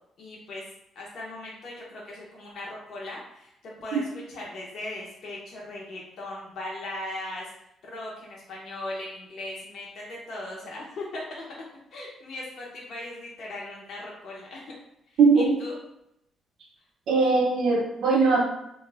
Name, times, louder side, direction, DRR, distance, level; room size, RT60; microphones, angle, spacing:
voice 1, 0.2-0.6 0.9-4.0 4.3-7.5 7.8-11.4 11.9-14.7 15.1-15.2 15.6-15.7, left 1 dB, 65° left, -4 dB, 0.8 m, -38 dB
voice 2, 15.2-15.6 17.1-18.4, right 4 dB, 75° right, -3 dB, 0.5 m, -20 dB
3.0 x 2.4 x 3.3 m, 0.81 s
cardioid pair, 90°, 0 cm